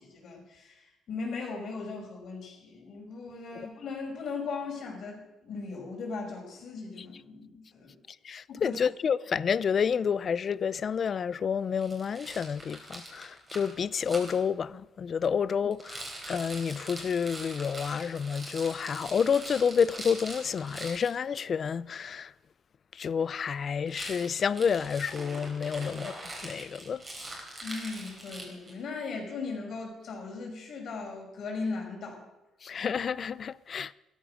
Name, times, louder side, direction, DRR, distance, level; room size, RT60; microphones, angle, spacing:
voice 1, 0.0-7.9 8.5-8.8 27.6-32.2, left 4 dB, 50° left, 5.3 m, -38 dB
voice 2, 8.2-22.3 22.9-27.0 32.6-33.9, left 6 dB, 35° left, 0.4 m, -29 dB
Rattle, 11.8-14.3 15.7-21.1 23.8-28.8, right 1 dB, 15° right, 3.9 m, -43 dB
16.0 x 13.5 x 6.3 m
cardioid pair, 160°, 0 cm